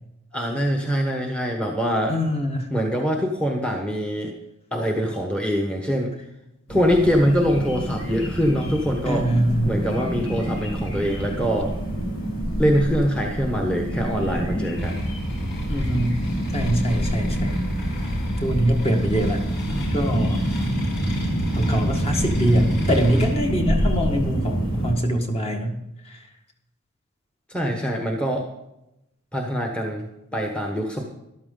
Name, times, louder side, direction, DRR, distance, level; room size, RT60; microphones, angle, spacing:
voice 1, 0.3-2.2 2.7-4.3 4.7-6.1 6.7-9.2 9.7-11.7 12.6-15.0 20.1-20.2 27.5-28.5 29.3-30.1 30.3-31.0, equal, 5° left, 1 dB, 1.1 m, -23 dB
voice 2, 2.1-2.7 9.0-9.8 15.7-16.2 16.5-17.6 18.4-19.4 19.9-20.4 21.5-25.8 26.1-26.2, equal, 30° left, 3 dB, 1.5 m, -23 dB
sound 1, 6.7-24.9, right 1 dB, 75° left, 3.7 m, -27 dB
sound 2, 14.8-23.3, left 1 dB, 50° left, 4.2 m, -30 dB
13.5 x 12.0 x 3.9 m, 0.88 s
head